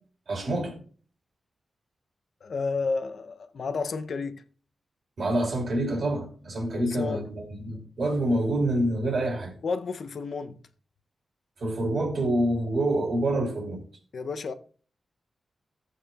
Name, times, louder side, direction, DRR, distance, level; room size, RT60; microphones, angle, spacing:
voice 1, 0.3-0.8 5.2-9.5 11.6-13.8, right 1 dB, 55° right, 2.7 m, -27 dB
voice 2, 2.4-4.4 6.7-7.3 9.6-10.6 14.1-14.5, left 4 dB, 60° left, 0.6 m, -31 dB
15.0 x 8.2 x 2.4 m
wide cardioid pair, 160°, 0 cm